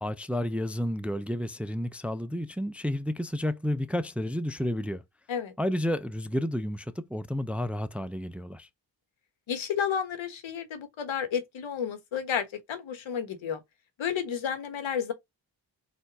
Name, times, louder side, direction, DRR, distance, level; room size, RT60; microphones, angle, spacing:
voice 1, 0.0-5.0 5.6-8.7, left 1 dB, 5° right, 0.4 m, -31 dB
voice 2, 9.5-13.6 14.0-15.1, left 8 dB, 80° left, 1.3 m, -31 dB
4.3 x 2.5 x 4.1 m
cardioid pair, 75°, 46 cm